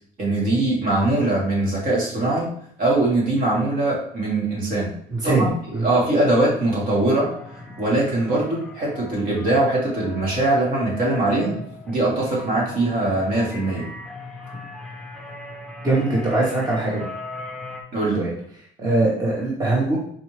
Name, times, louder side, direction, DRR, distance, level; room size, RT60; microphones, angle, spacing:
voice 1, 0.2-2.5 2.8-4.9 5.2-7.3 7.8-11.6 11.9-13.9 17.9-18.2, right 2 dB, 55° right, -4 dB, 1.6 m, -21 dB
voice 2, 5.1-5.4 5.7-5.9 14.4-14.5 15.8-17.0 18.1-18.3 18.8-20.0, right 2 dB, 20° right, -5 dB, 1.0 m, -21 dB
sound 1, 7.2-17.8, left 2 dB, ahead, 0.7 m, -38 dB
4.1 x 2.7 x 3.1 m, 0.64 s
cardioid pair, 110°, 17 cm